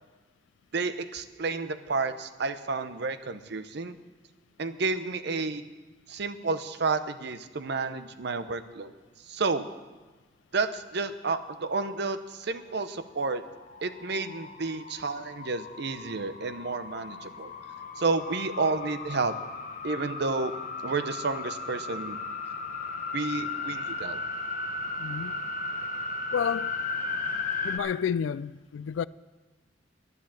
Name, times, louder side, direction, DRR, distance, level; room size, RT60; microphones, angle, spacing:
voice 1, 0.7-4.0 4.6-5.6 6.1-8.9 9.3-9.7 10.5-13.4 13.8-17.5 18.0-19.4 19.8-20.5 20.8-22.2 23.1-24.2, right 4 dB, 65° right, 0.7 m, -31 dB
sound 1, 13.3-27.8, left 3 dB, 45° left, 1.0 m, -36 dB
voice 2, 25.0-25.4 26.3-26.8 27.6-29.1, left 7 dB, 85° left, 0.3 m, -30 dB
11.0 x 10.0 x 7.5 m
head